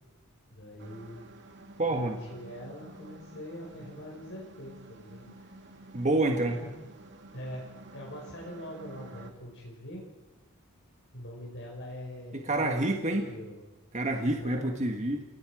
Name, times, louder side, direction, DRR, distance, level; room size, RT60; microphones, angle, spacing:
voice 1, 0.5-1.3 1.9-6.0 6.5-6.7 7.3-10.0 11.1-13.6 14.2-14.7, equal, 55° left, -2 dB, 5.1 m, -43 dB
sound 1, 0.8-9.3, right 2 dB, 55° right, 2.5 m, -51 dB
voice 2, 1.8-2.2 5.9-6.6 12.3-13.3 13.9-15.2, right 2 dB, 30° right, 3 dB, 1.6 m, -28 dB
30.0 x 18.5 x 4.9 m, 1.2 s
head